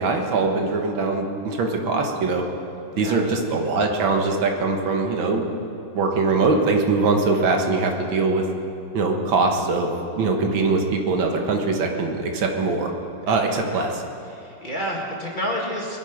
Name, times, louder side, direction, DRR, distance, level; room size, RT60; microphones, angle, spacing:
voice 1, 0.0-2.4 3.0-5.5 5.9-8.4 8.9-12.9 13.3-14.0, right 3 dB, 85° right, 3 dB, 2.2 m, -22 dB
voice 2, 2.9-3.3 13.2-13.8 14.2-16.0, equal, 25° left, -2 dB, 1.9 m, -30 dB
21.5 x 11.0 x 5.1 m, 2.6 s
omnidirectional pair, 2.1 m